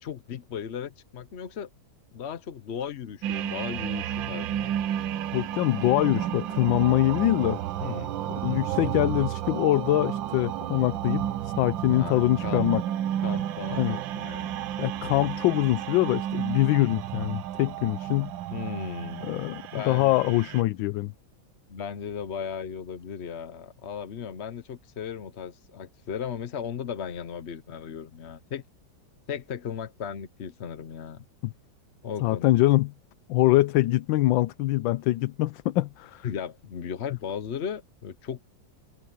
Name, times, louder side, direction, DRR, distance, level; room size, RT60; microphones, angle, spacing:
voice 1, 0.0-1.7 2.1-4.7 7.8-8.2 11.9-12.7 13.2-14.5 18.5-19.3 19.7-20.1 21.7-28.6 29.3-31.2 32.0-32.5 36.2-38.4, left 7 dB, 50° left, 0.8 m, -36 dB
sound 1, 3.2-20.6, right 11 dB, 75° right, 1.5 m, -32 dB
voice 2, 5.3-7.6 8.4-12.8 13.7-14.0 14.8-18.3 19.2-21.1 31.4-31.5 32.2-32.9 33.3-36.3, left 16 dB, 80° left, 1.3 m, -24 dB
omnidirectional pair, 2.1 m